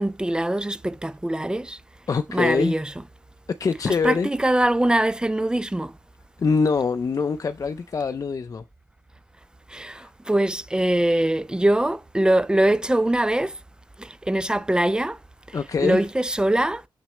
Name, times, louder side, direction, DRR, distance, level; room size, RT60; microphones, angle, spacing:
voice 1, 0.0-1.8 2.3-2.9 3.9-5.9 9.7-13.5 14.0-15.2 15.5-16.8, right 1 dB, 10° right, 0.4 m, -23 dB
voice 2, 2.1-2.7 3.6-4.3 6.4-8.6 9.9-10.1 15.5-16.0, left 5 dB, 45° left, 0.6 m, -24 dB
7.4 x 6.0 x 3.3 m
wide cardioid pair, 130°, 8 cm